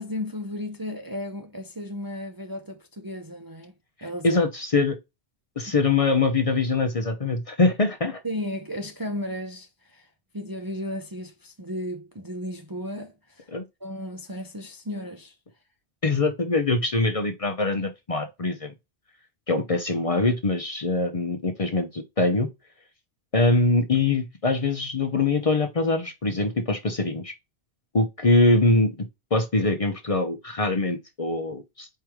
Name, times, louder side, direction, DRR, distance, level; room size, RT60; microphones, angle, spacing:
voice 1, 0.0-3.7 4.0-4.4 5.6-5.7 8.2-10.1 10.3-13.5 13.8-15.4, left 1 dB, 25° right, 0.5 m, -34 dB
voice 2, 4.2-5.0 5.6-8.2 13.5-13.6 16.0-18.7 19.5-22.5 23.3-27.3 27.9-28.9 29.3-31.9, left 3 dB, 40° left, 0.7 m, -23 dB
4.6 x 3.1 x 3.5 m
omnidirectional pair, 1.1 m